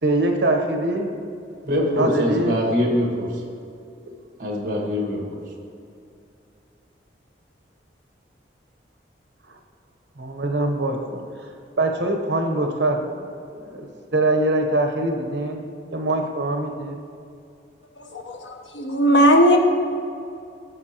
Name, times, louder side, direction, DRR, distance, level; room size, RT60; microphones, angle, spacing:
voice 1, 0.0-1.1 1.9-2.5 9.5-9.6 10.2-11.0 11.8-13.3 13.5-17.0, right 2 dB, 70° right, 4 dB, 1.0 m, -23 dB
voice 2, 1.6-3.3 4.4-5.2, equal, 50° right, -1 dB, 1.7 m, -23 dB
voice 3, 18.0-19.6, equal, 85° left, 3 dB, 1.0 m, -18 dB
13.5 x 6.8 x 3.0 m, 2.5 s
head